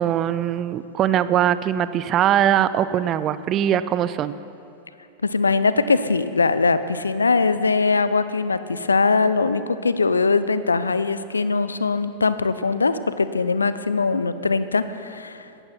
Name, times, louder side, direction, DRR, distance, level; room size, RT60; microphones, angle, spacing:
voice 1, 0.0-4.3, right 10 dB, 30° right, 14 dB, 0.5 m, -21 dB
voice 2, 5.2-15.5, left 4 dB, 75° left, 13 dB, 0.6 m, -21 dB
18.0 x 13.5 x 4.4 m, 2.6 s
figure-of-eight pair, 90°, 0 cm